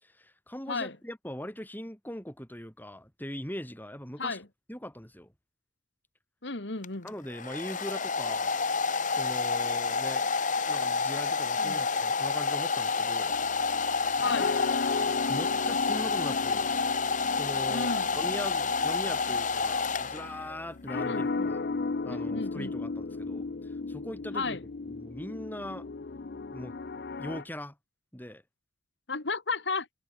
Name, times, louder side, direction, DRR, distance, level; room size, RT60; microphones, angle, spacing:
voice 1, 0.0-4.4 4.7-5.3 7.0-8.6 9.1-10.3 10.7-13.4 15.3-16.8 17.4-21.6 22.0-24.6 24.9-25.9 26.5-26.7 27.2-27.8 28.1-28.4, equal, 10° left, 7.3 m, -40 dB
voice 2, 6.4-7.1 11.6-11.8 14.2-14.5 17.7-18.2 21.0-21.5 22.1-22.7 24.3-24.6 29.1-29.9, left 3 dB, 85° left, 2.3 m, -33 dB
Domestic sounds home sounds, 6.8-20.6, left 4 dB, 45° left, 1.8 m, -29 dB
sound 1, 13.3-27.4, left 3 dB, 60° left, 0.6 m, -36 dB
head